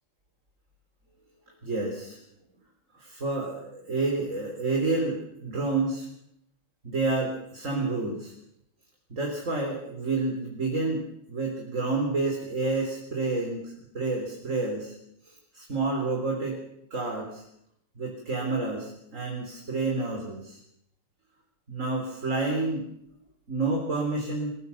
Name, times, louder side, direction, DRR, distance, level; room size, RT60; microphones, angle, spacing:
voice 1, 1.6-2.2 3.0-6.1 6.8-8.3 9.1-15.0 15.2-16.6 16.9-17.4 18.0-20.6 21.7-22.9 23.5-24.5, right 3 dB, 35° right, 0 dB, 4.0 m, -29 dB
28.0 x 16.5 x 7.1 m, 0.76 s
omnidirectional pair, 2.4 m